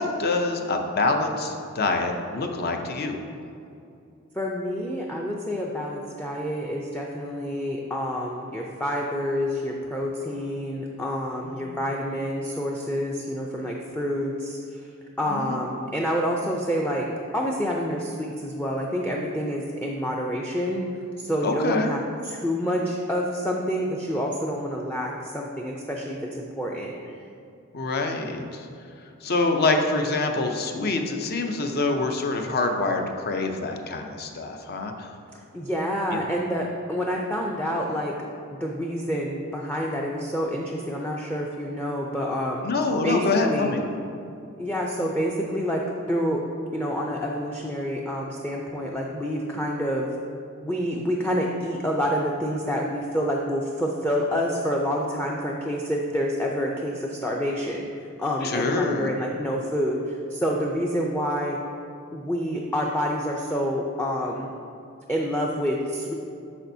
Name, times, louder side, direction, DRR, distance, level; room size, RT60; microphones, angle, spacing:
voice 1, 0.0-3.2 11.4-11.7 15.2-15.6 21.4-21.9 27.7-28.7 29.2-35.1 36.1-36.2 42.6-43.8 58.4-59.1, left 3 dB, 50° left, 4 dB, 0.6 m, -26 dB
voice 2, 4.4-14.6 15.2-17.1 17.3-20.8 21.2-27.0 35.5-38.2 38.5-42.7 43.0-43.7 44.6-46.4 46.7-50.1 50.6-57.9 58.2-60.0 60.3-61.6 62.1-64.5 65.1-66.1, equal, 10° left, -1 dB, 0.4 m, -28 dB
8.5 x 6.1 x 2.7 m, 2.5 s
head